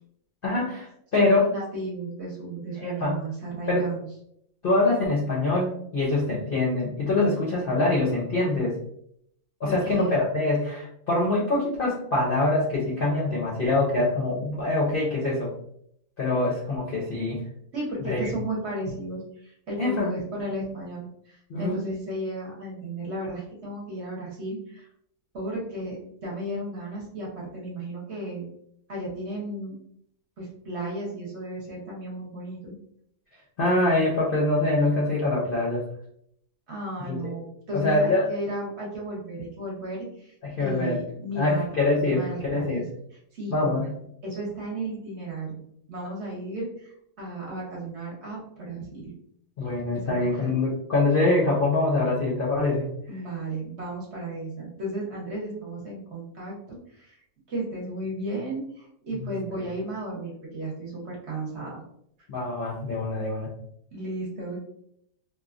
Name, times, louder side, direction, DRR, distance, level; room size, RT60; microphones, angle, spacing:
voice 1, 0.4-1.5 2.8-3.2 3.7-3.9 4.6-8.8 9.6-15.5 16.2-17.4 18.0-18.3 19.8-20.1 21.5-21.8 33.6-35.8 37.1-37.2 37.7-38.2 40.4-41.0 41.3-42.8 43.5-43.9 49.6-52.9 59.1-59.3 62.3-63.5, left 2 dB, 60° left, -5 dB, 0.6 m, -24 dB
voice 2, 1.2-4.1 9.6-10.2 17.7-24.9 25.3-28.5 28.9-29.8 30.4-32.7 36.7-41.7 42.0-42.8 43.3-43.8 44.2-45.6 45.9-49.1 49.9-50.5 53.1-57.2 57.5-61.8 63.9-64.6, right 1 dB, 50° right, -4 dB, 1.0 m, -34 dB
2.9 x 2.2 x 2.4 m, 0.71 s
omnidirectional pair, 1.6 m